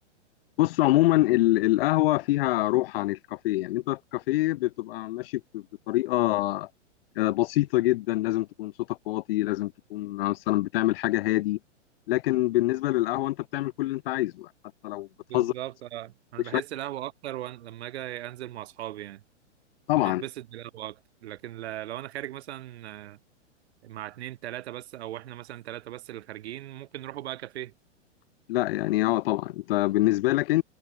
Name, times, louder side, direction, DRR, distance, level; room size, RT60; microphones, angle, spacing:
voice 1, 0.6-6.7 7.2-11.6 12.1-14.5 14.8-15.1 15.3-15.5 16.5-16.6 19.9-20.2 28.5-30.6, left 17 dB, 50° left, 1.8 m, -25 dB
voice 2, 15.3-19.2 19.9-23.2 23.8-27.7, right 13 dB, 60° right, 4.8 m, -38 dB
hypercardioid pair, 130°, 36 cm